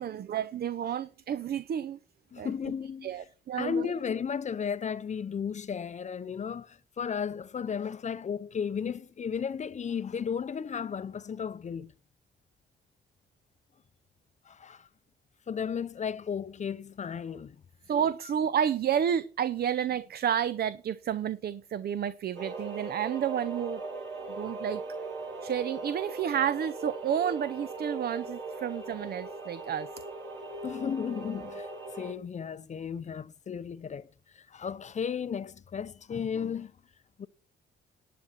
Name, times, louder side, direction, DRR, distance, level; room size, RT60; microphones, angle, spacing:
voice 1, 0.0-2.0 2.4-2.5 3.0-3.9 17.9-23.8 24.3-24.8 25.4-29.9, right 9 dB, 50° right, 0.6 m, -30 dB
voice 2, 2.3-3.2 3.5-11.9 14.5-14.9 15.5-17.6 30.6-31.7 32.0-34.1 34.3-36.7 37.2-37.3, left 7 dB, 35° left, 0.6 m, -34 dB
sound 1, 22.3-32.1, right 3 dB, 80° right, 4.3 m, -39 dB
11.0 x 9.3 x 4.4 m
cardioid pair, 90°, 20 cm